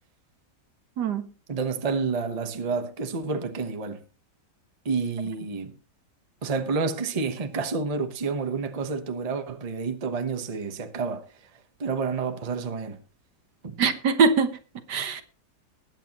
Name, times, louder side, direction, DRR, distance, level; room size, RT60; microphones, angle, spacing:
voice 1, 1.0-1.3 13.8-14.6 14.9-15.2, right 5 dB, 70° right, 1.7 m, -22 dB
voice 2, 1.5-4.0 4.8-5.7 6.4-11.3 11.8-13.0 13.6-13.7, right 4 dB, 25° right, 0.9 m, -29 dB
20.0 x 9.0 x 3.0 m
omnidirectional pair, 1.9 m